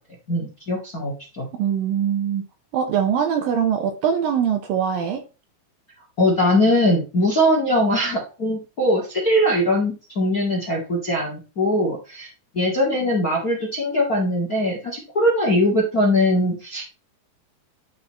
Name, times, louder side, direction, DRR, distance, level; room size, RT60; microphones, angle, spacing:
voice 1, 0.3-1.5 6.2-12.3 12.5-17.0, left 1 dB, 40° left, 1.3 m, -21 dB
voice 2, 1.5-2.5 2.7-5.2, right 8 dB, 75° right, 2.3 m, -22 dB
11.5 x 4.2 x 4.2 m
omnidirectional pair, 4.8 m